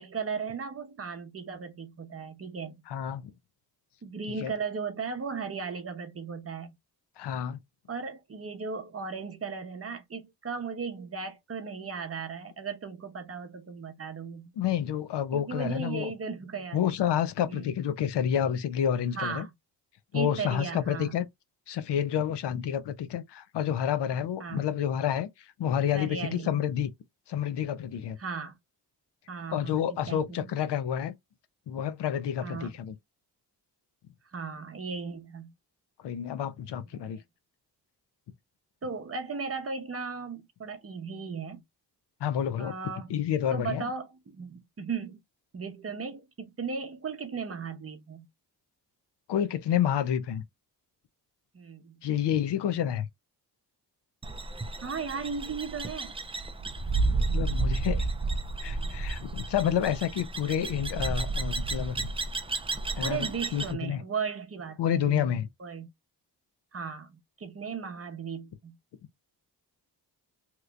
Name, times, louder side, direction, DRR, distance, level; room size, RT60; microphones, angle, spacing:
voice 1, 0.0-2.8 4.0-6.7 7.9-14.5 15.3-16.9 17.5-17.7 19.2-19.5 20.1-21.2 24.4-24.6 25.9-26.6 28.2-28.5 29.3-30.5 32.4-32.8 34.3-35.5 36.9-37.2 38.8-41.6 42.6-43.1 43.5-45.2 45.5-48.3 51.5-52.0 54.8-56.2 63.0-65.9 66.7-68.8, right 5 dB, 35° right, 0.7 m, -36 dB
voice 2, 2.9-3.2 4.4-4.5 7.2-7.6 14.6-16.1 16.7-19.5 20.1-21.3 21.7-26.9 27.3-28.2 29.5-31.2 31.7-32.9 36.0-37.2 42.2-42.7 43.1-43.9 49.3-50.4 52.0-53.1 57.3-58.1 58.6-62.1 63.0-63.3 63.5-64.0 64.8-65.5, left 9 dB, 80° left, 0.6 m, -29 dB
sound 1, 54.2-63.7, right 3 dB, 15° right, 0.3 m, -31 dB
3.0 x 2.4 x 3.1 m
cardioid pair, 105°, 41 cm